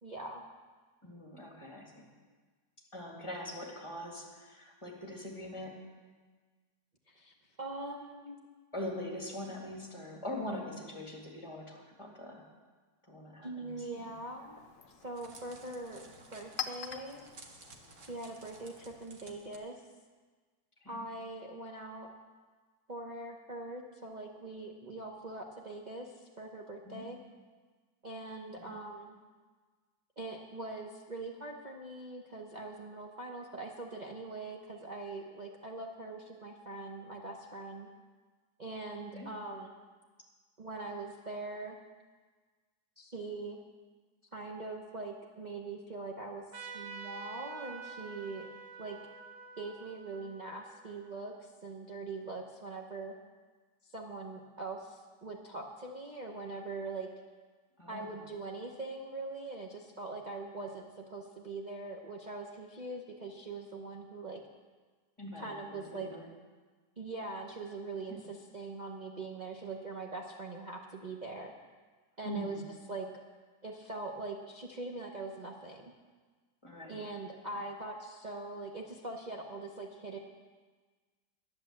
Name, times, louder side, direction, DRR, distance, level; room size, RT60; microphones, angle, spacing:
voice 1, 0.0-0.4 7.1-8.4 13.4-14.6 15.0-16.0 16.3-17.3 18.1-19.8 20.9-22.1 22.9-27.2 28.0-29.2 30.2-37.9 38.6-39.7 40.6-41.8 43.0-43.6 44.3-46.4 46.7-48.5 48.8-49.0 49.6-53.1 53.9-57.1 57.9-64.4 65.4-66.1 67.0-71.5 72.2-72.6 72.9-73.1 73.6-75.9 76.9-80.2, right 3 dB, 35° right, -1 dB, 0.8 m, -42 dB
voice 2, 1.0-2.1 2.9-5.8 8.7-12.4 13.1-14.1 20.8-21.0 26.8-27.0 28.6-28.7 39.1-39.3 57.8-58.2 65.2-66.3 68.1-68.3 72.2-72.6 76.6-77.0, left 1 dB, 15° left, -1 dB, 2.1 m, -43 dB
Chink clink, 13.6-19.2, left 7 dB, 55° left, 1.0 m, -47 dB
Crackle, 14.6-19.6, right 3 dB, 55° right, 1.6 m, -55 dB
Trumpet, 46.5-51.6, right 4 dB, 75° right, 1.8 m, -48 dB
11.0 x 10.5 x 7.4 m, 1.4 s
omnidirectional pair, 1.9 m